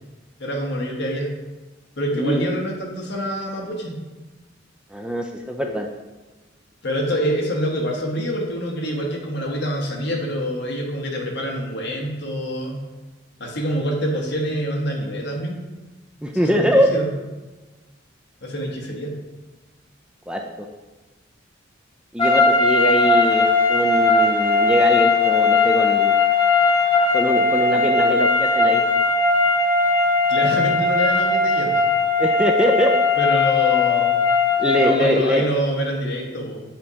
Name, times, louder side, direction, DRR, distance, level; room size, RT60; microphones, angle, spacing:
voice 1, 0.4-1.3 2.0-4.0 6.8-12.8 13.4-15.6 16.4-17.1 18.4-19.1 30.3-31.8 33.2-34.3 34.8-36.6, equal, 60° left, 0 dB, 1.2 m, -26 dB
voice 2, 2.1-2.5 4.9-5.9 16.2-16.9 20.3-20.4 22.1-26.1 27.1-28.8 32.2-32.9 34.6-35.5, equal, 5° right, 2 dB, 0.3 m, -22 dB
sound 1, 22.2-35.0, left 3 dB, 20° left, 0.9 m, -18 dB
7.5 x 2.9 x 4.7 m, 1.2 s
head